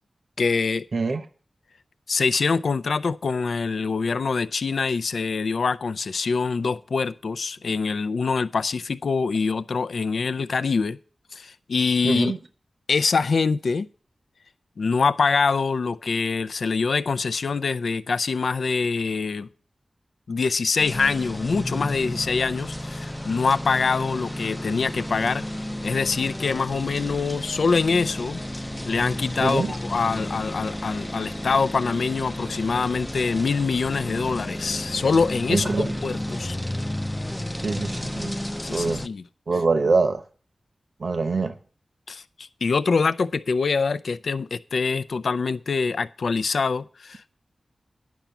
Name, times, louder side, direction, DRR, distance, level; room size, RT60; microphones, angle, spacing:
voice 1, 0.4-0.9 2.1-11.0 11.3-12.3 12.9-13.9 14.8-19.5 20.3-25.4 25.8-36.6 38.6-39.2 42.1-47.4, left 4 dB, 80° left, 0.4 m, -24 dB
voice 2, 12.0-12.4 29.4-29.8 35.5-35.9 37.6-38.3 38.7-39.0 39.5-40.2 41.0-41.5, right 3 dB, 65° right, 0.8 m, -24 dB
sound 1, 20.8-39.1, left 1 dB, 10° left, 0.5 m, -32 dB
10.5 x 6.0 x 6.9 m
wide cardioid pair, 100°, 0 cm